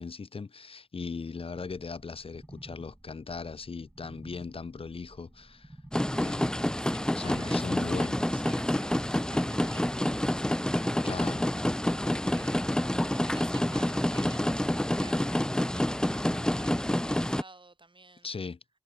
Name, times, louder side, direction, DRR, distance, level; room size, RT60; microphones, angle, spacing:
voice 1, 0.0-5.8 6.1-6.6 7.1-8.2 11.0-11.5 18.2-18.6, left 4 dB, 70° left, 0.6 m, -38 dB
sound 1, 1.5-6.7, right 1 dB, 15° right, 1.9 m, -53 dB
sound 2, 5.9-17.4, left 1 dB, 5° left, 0.4 m, -28 dB
voice 2, 6.8-7.9 8.3-11.5 12.0-12.8 13.1-18.3, right 3 dB, 55° right, 5.9 m, -52 dB
wide cardioid pair, 65°, 10 cm